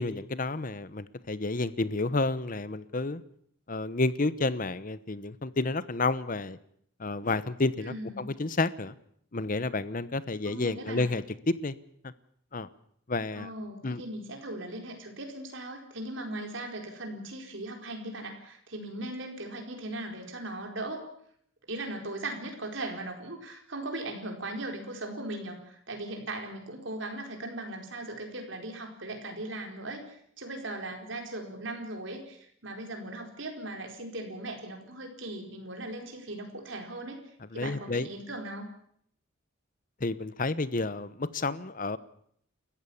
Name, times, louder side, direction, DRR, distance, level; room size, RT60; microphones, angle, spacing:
voice 1, 0.0-3.2 3.7-6.6 7.0-8.9 9.3-11.7 12.5-12.7 13.1-13.5 13.8-14.0 37.5-38.1 40.0-42.0, left 3 dB, 45° left, 15 dB, 0.9 m, -30 dB
voice 2, 7.8-8.3 10.5-11.0 13.3-21.0 21.7-38.7, right 2 dB, 70° right, 3 dB, 4.5 m, -38 dB
29.5 x 14.5 x 7.2 m, 0.67 s
head